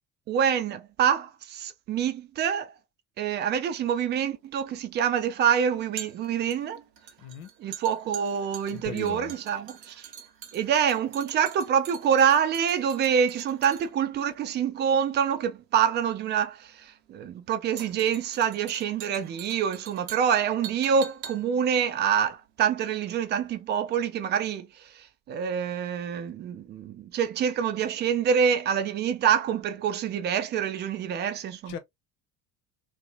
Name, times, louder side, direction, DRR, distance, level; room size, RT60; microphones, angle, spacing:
voice 1, 0.3-2.7 3.2-6.8 7.6-10.1 10.5-31.8, right 8 dB, 25° right, 0.3 m, -26 dB
sound 1, 3.8-23.1 23.4-23.5, right 9 dB, 80° right, 0.6 m, -45 dB
voice 2, 7.2-7.5 8.7-9.3 31.7-31.8, left 8 dB, 70° left, 0.7 m, -38 dB
2.7 x 2.1 x 2.3 m
figure-of-eight pair, 60°, 50 cm